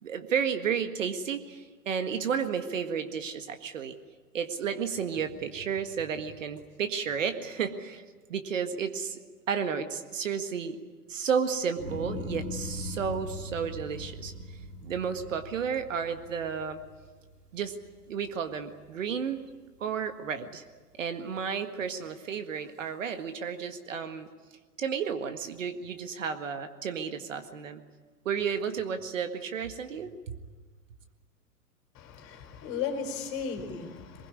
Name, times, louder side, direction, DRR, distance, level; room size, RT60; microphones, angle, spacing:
voice 1, 0.0-4.0 4.3-8.0 8.3-9.2 9.5-10.8 11.1-16.8 17.5-17.8 18.1-19.4 19.8-20.6 21.0-24.3 24.8-27.8 28.3-30.4, right 7 dB, 55° right, 8 dB, 1.9 m, -32 dB
sound 1, 11.8-18.1 18.5-19.1, left 1 dB, 80° right, 4.0 m, -40 dB
voice 2, 32.0-34.3, left 6 dB, 30° left, 5 dB, 4.3 m, -35 dB
23.0 x 21.5 x 9.7 m, 1.5 s
figure-of-eight pair, 110°, 47 cm